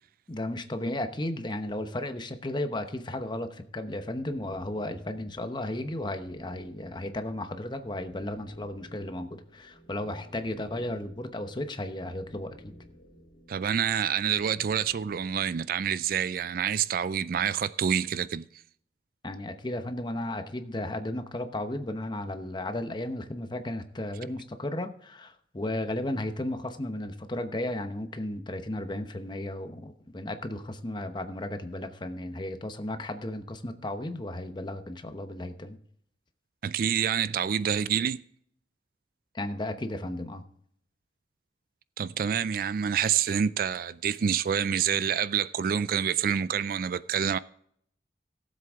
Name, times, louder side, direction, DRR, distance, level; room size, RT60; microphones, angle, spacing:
voice 1, 0.3-12.7 19.2-35.8 39.3-40.4, left 1 dB, 25° left, 0.9 m, -34 dB
sound 1, 4.2-15.6, equal, 50° left, 2.7 m, -54 dB
voice 2, 13.5-18.4 36.6-38.2 42.0-47.4, right 8 dB, 50° right, 0.3 m, -27 dB
17.5 x 7.6 x 3.6 m
head